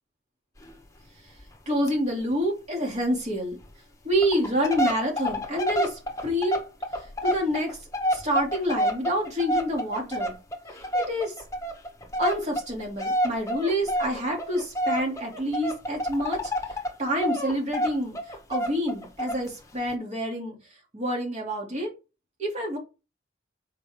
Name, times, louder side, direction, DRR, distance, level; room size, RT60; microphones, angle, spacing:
sound 1, 0.6-0.7 1.0-1.1 1.4-1.6 1.9-2.0 2.3-2.4 3.0-3.1 3.6-3.7 4.1-17.0 17.2-19.5 19.9-20.0, equal, 15° left, 1.0 m, -29 dB
voice 1, 1.7-3.6 4.0-6.6 7.2-7.8 8.1-10.4 10.9-11.3 12.2-16.5 17.0-20.6 20.9-21.9 22.4-22.8, equal, 40° right, -1 dB, 2.4 m, -27 dB
6.0 x 4.6 x 3.5 m, 0.29 s
head